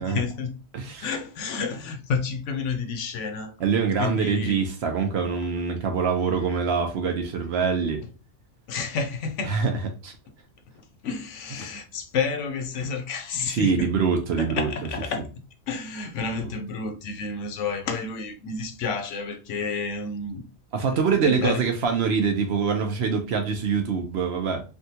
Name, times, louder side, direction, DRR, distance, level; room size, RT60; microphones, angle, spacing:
voice 1, 0.0-0.5 1.0-3.5 4.0-4.6 8.7-9.5 11.0-13.9 14.4-15.3 15.7-20.4 20.9-21.6, left 5 dB, 70° left, 0.9 m, -30 dB
voice 2, 0.7-1.1 3.6-8.0 9.5-9.8 10.0-10.1 13.5-14.7 16.4-16.5 20.7-24.6, right 5 dB, 60° right, 0.8 m, -24 dB
3.5 x 2.2 x 2.7 m
omnidirectional pair, 1.3 m